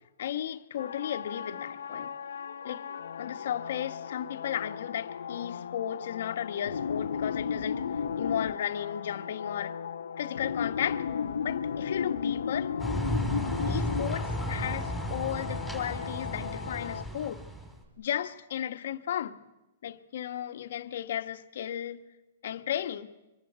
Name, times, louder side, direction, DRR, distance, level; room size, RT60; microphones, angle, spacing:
voice 1, 0.2-2.1 2.6-2.8 3.2-7.8 8.2-9.8 10.2-11.1 11.4-12.7 13.6-17.4 18.0-19.4 19.8-22.0 22.4-23.1, left 10 dB, 65° left, 1.5 m, -34 dB
sound 1, 0.8-17.0, left 7 dB, 85° left, 0.9 m, -35 dB
sound 2, 12.8-17.8, equal, 5° right, 5.2 m, -34 dB
25.0 x 21.5 x 8.3 m
hypercardioid pair, 150°, 0 cm